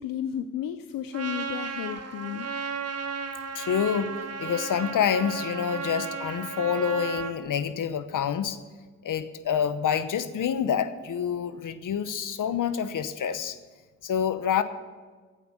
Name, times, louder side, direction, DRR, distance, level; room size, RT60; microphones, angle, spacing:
voice 1, 0.0-2.5, left 10 dB, 85° left, 9 dB, 0.6 m, -33 dB
Trumpet, 1.1-7.4, right 6 dB, 50° right, 1.4 m, -34 dB
voice 2, 3.5-8.6 9.0-13.6 14.0-14.6, left 8 dB, 70° left, 12 dB, 0.9 m, -27 dB
12.0 x 8.6 x 7.2 m, 1.4 s
supercardioid pair, 50°, 33 cm